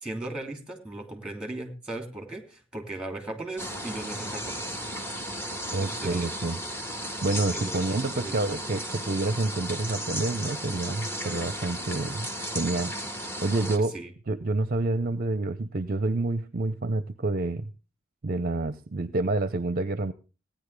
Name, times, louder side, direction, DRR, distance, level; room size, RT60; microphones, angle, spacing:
voice 1, 0.0-4.8 5.8-6.3 7.5-8.3 13.7-14.1, right 2 dB, 5° right, 4 dB, 2.8 m, -37 dB
sound 1, 3.6-13.8, equal, 10° left, 1.5 m, -35 dB
voice 2, 5.7-6.6 7.2-12.3 12.5-12.9 13.4-13.9 14.3-17.7 18.2-20.1, right 2 dB, 45° right, 13 dB, 0.6 m, -28 dB
17.0 x 10.0 x 3.3 m, 0.33 s
head